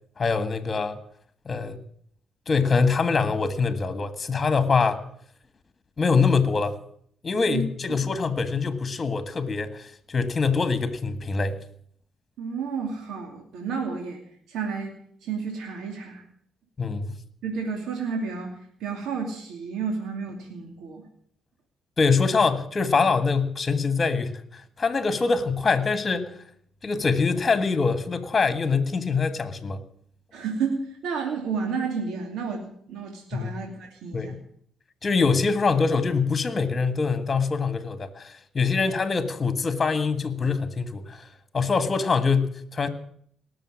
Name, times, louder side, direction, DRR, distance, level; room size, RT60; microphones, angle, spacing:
voice 1, 0.2-1.0 1.5-1.8 2.5-5.0 6.0-6.8 7.2-11.6 16.8-17.1 22.0-26.3 26.8-29.8 33.3-33.5 34.1-34.4 35.0-41.2 41.5-42.9, left 4 dB, 35° left, 12 dB, 1.6 m, -24 dB
voice 2, 12.4-14.2 14.5-14.9 15.2-16.2 17.4-18.5 18.8-21.1 30.3-34.3, right 5 dB, 80° right, 2 dB, 2.6 m, -31 dB
18.5 x 6.9 x 9.7 m, 0.63 s
cardioid pair, 90°, 0 cm